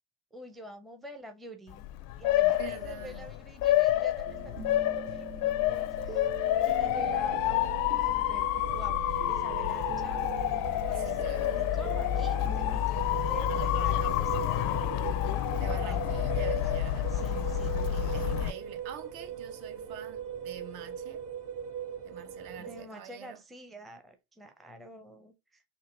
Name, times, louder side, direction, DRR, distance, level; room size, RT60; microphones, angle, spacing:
voice 1, 0.3-1.8 2.2-10.3 10.9-15.0 15.4-16.1 16.3-16.8 17.1-18.1 22.6-25.6, right 1 dB, ahead, 0.5 m, -48 dB
Motor vehicle (road) / Siren, 1.7-18.5, left 13 dB, 60° left, 0.5 m, -29 dB
voice 2, 2.4-3.3 11.0-11.9 15.6-17.1 17.9-21.2 22.0-23.4, right 9 dB, 70° right, 0.8 m, -46 dB
sound 1, 4.2-12.8, right 8 dB, 85° right, 1.9 m, -44 dB
sound 2, 6.5-22.8, right 8 dB, 50° right, 1.3 m, -39 dB
3.9 x 2.5 x 3.3 m
cardioid pair, 120°, 39 cm